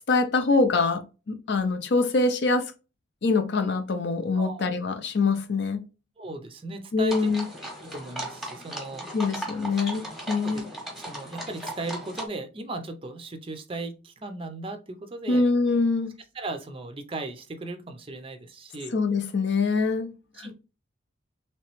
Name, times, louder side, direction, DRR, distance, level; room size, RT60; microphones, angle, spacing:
voice 1, 0.1-2.7 3.2-5.8 6.9-7.4 9.1-10.6 15.3-16.1 18.9-20.1 20.4-20.5, left 3 dB, 55° left, 0.5 m, -24 dB
voice 2, 4.4-4.7 6.2-7.3 7.8-9.1 10.4-10.6 11.0-15.4 16.3-19.0 20.3-20.5, right 2 dB, 25° right, 0.4 m, -37 dB
sound 1, 7.1-12.3, right 1 dB, ahead, 0.9 m, -37 dB
3.2 x 2.9 x 3.0 m
head